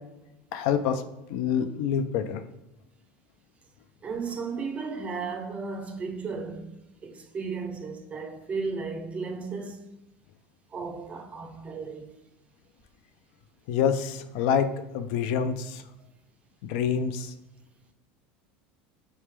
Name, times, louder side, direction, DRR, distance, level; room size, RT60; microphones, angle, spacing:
voice 1, 0.5-1.0 1.3-2.4 13.7-14.7 14.9-15.8 16.7-17.3, left 7 dB, 70° left, 0.3 m, -26 dB
voice 2, 4.0-6.7 7.0-9.9 10.7-12.1, right 4 dB, 25° right, 0.4 m, -34 dB
3.2 x 3.2 x 3.2 m
supercardioid pair, 140°, 5 cm